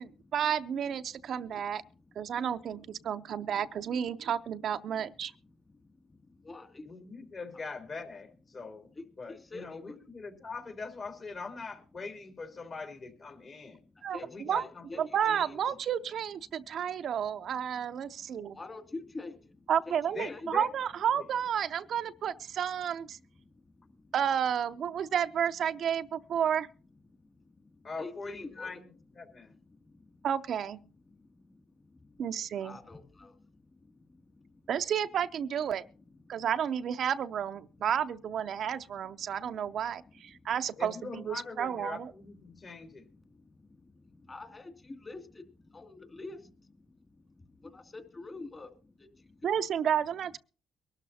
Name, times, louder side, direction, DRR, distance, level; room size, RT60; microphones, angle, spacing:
voice 1, 0.0-1.8 2.2-5.3 14.0-14.2 14.5-14.6 15.0-18.6 19.7-23.2 24.1-26.7 30.2-30.8 32.2-32.8 34.7-35.8 36.3-42.1 49.4-50.4, right 8 dB, 65° right, 0.6 m, -31 dB
voice 2, 6.1-6.9 9.0-9.1 9.5-10.0 13.9-14.3 14.5-15.6 18.2-20.0 20.3-20.5 23.7-24.1 27.3-28.8 29.7-30.2 31.3-32.2 32.6-33.5 33.8-34.6 36.2-36.5 37.8-37.9 40.3-40.5 42.5-42.6 43.4-46.8 47.3-49.4, left 3 dB, 30° left, 2.3 m, -47 dB
voice 3, 6.8-8.9 9.2-13.8 14.2-15.4 15.7-15.8 20.1-20.9 21.1-21.3 27.8-29.5 40.8-43.1, left 4 dB, 50° left, 3.4 m, -42 dB
23.0 x 12.5 x 2.8 m
cardioid pair, 90°, 0 cm